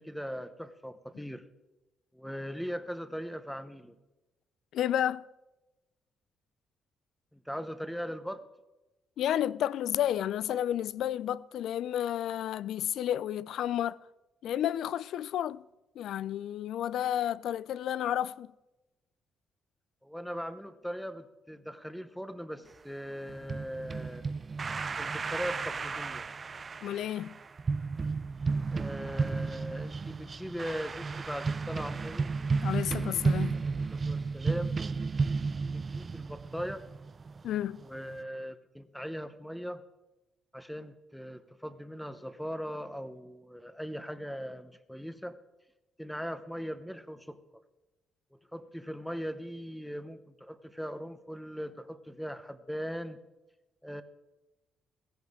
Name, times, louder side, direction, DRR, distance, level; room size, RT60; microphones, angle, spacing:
voice 1, 0.0-1.4 2.1-4.0 7.3-8.4 20.0-24.3 25.0-26.2 28.7-32.3 33.5-34.8 35.7-36.9 37.8-39.8 40.5-45.4 46.0-47.4 48.3-53.2 53.8-54.0, equal, ahead, 0.9 m, -39 dB
voice 2, 4.7-5.2 9.2-14.0 14.4-15.6 16.0-18.5 26.8-27.4 32.6-33.6 37.4-37.8, left 11 dB, 75° left, 0.4 m, -31 dB
sound 1, 23.3-38.2, right 4 dB, 30° right, 0.3 m, -33 dB
16.0 x 16.0 x 3.7 m
cardioid pair, 120°, 0 cm